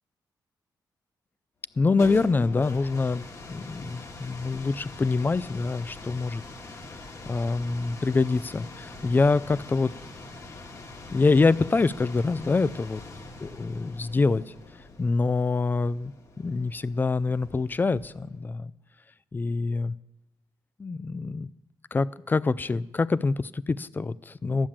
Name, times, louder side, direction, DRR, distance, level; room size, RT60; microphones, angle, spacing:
sound 1, 1.7-18.4, left 3 dB, 45° left, 1.6 m, -44 dB
voice 1, 1.8-6.4 7.3-9.9 11.1-13.0 13.4-14.4 15.0-18.7 19.3-19.9 20.8-21.5 21.9-24.7, left 3 dB, 25° left, 18 dB, 0.4 m, -25 dB
12.5 x 7.3 x 8.7 m, 0.98 s
cardioid pair, 95°, 8 cm